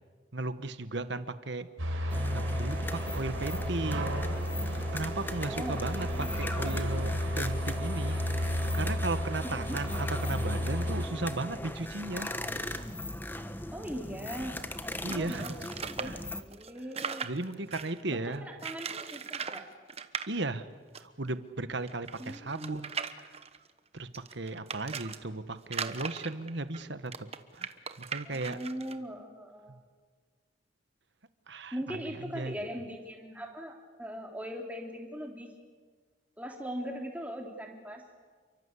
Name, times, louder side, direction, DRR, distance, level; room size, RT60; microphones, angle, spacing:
voice 1, 0.3-1.7 2.3-4.2 4.9-12.4 15.0-15.5 16.0-16.2 17.2-18.5 20.3-20.7 21.0-23.4 23.9-27.3 27.5-28.6 31.5-32.5, right 2 dB, 60° right, 12 dB, 1.3 m, -36 dB
sound 1, 1.8-11.1, equal, 90° right, 4.6 m, -33 dB
sound 2, 2.1-16.4, left 1 dB, 10° left, 1.2 m, -39 dB
voice 2, 5.4-6.4 9.4-9.8 13.7-14.6 15.1-17.3 18.1-19.7 22.2-22.8 28.3-29.8 31.7-35.5 36.4-38.0, equal, 5° right, 1 dB, 3.5 m, -40 dB
sound 3, 15.1-18.0 18.6-19.6 19.9-20.3 20.9-21.0 21.2-21.3 21.9-25.2 25.6-28.9, right 6 dB, 30° right, 1.1 m, -38 dB
29.0 x 24.0 x 8.3 m, 1.5 s
head